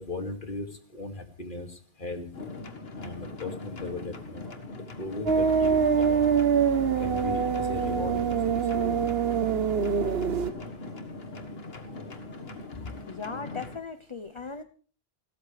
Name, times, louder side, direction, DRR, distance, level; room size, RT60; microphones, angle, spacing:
voice 1, 0.0-1.7 2.0-2.3 2.9-4.5 5.0-6.4 7.0-9.0, left 2 dB, 55° left, 5 dB, 2.6 m, -37 dB
sound 1, 2.3-13.8, left 2 dB, 75° left, 1.9 m, -41 dB
sound 2, 5.3-10.5, right 7 dB, 75° right, 1.2 m, -24 dB
voice 2, 13.1-14.6, left 5 dB, 30° left, 9 dB, 0.8 m, -38 dB
29.5 x 13.5 x 3.4 m, 0.42 s
omnidirectional pair, 1.0 m